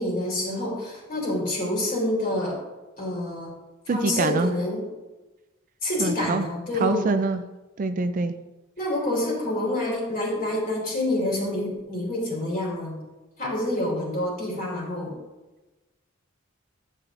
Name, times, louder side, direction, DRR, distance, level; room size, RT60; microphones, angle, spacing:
voice 1, 0.0-2.6 3.0-3.6 3.9-4.8 5.8-7.1 8.8-13.0 13.4-15.1, left 1 dB, 45° left, -3 dB, 3.0 m, -27 dB
voice 2, 3.9-4.5 6.0-6.5 6.8-7.4 7.8-8.3, right 3 dB, 40° right, 9 dB, 0.4 m, -24 dB
11.0 x 7.8 x 2.5 m, 1.1 s
head